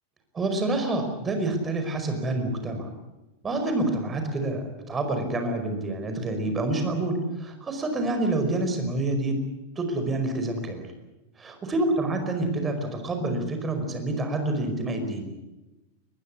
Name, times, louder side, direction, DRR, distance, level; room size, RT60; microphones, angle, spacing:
voice 1, 0.3-2.9 3.4-9.4 9.8-10.8 11.4-15.3, right 2 dB, 20° right, 6 dB, 5.2 m, -27 dB
21.5 x 21.5 x 8.6 m, 1.0 s
figure-of-eight pair, 90°, 0 cm